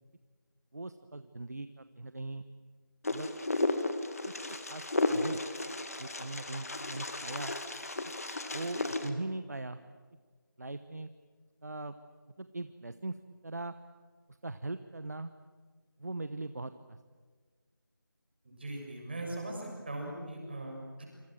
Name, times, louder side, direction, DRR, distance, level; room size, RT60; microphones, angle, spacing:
voice 1, 0.7-2.4 3.1-3.3 4.2-5.4 6.0-7.5 8.5-9.8 10.6-11.1 11.6-11.9 12.4-13.2 13.4-13.7 14.4-15.3 16.0-17.0, right 2 dB, 50° right, 11 dB, 1.1 m, -40 dB
Wind, 3.0-9.1, left 2 dB, 45° left, 2.1 m, -34 dB
voice 2, 18.4-21.1, right 1 dB, 30° right, 0 dB, 6.7 m, -40 dB
27.0 x 26.5 x 7.7 m, 1.5 s
figure-of-eight pair, 170°, 11 cm